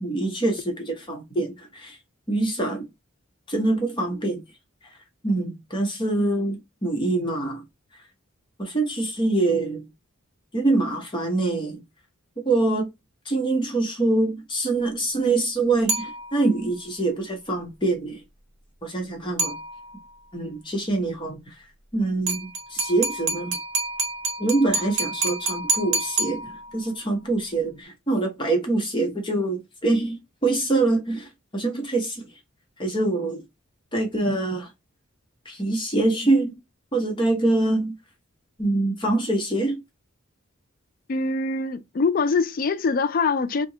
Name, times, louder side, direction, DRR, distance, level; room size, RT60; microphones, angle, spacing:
voice 1, 0.0-2.0 2.3-2.9 3.5-4.4 5.2-7.6 8.6-9.8 10.5-11.8 12.4-12.9 13.3-18.2 18.8-19.6 20.3-21.5 21.9-23.6 24.4-32.3 32.8-33.4 33.9-34.7 35.5-36.5 36.9-37.9 38.6-39.8, right 2 dB, 20° left, 0.8 m, -24 dB
sound 1, 15.9-16.7 19.4-20.1 22.3-26.9, right 3 dB, 70° right, 1.0 m, -28 dB
voice 2, 41.1-43.7, left 4 dB, 40° left, 0.3 m, -23 dB
2.7 x 2.2 x 3.7 m
head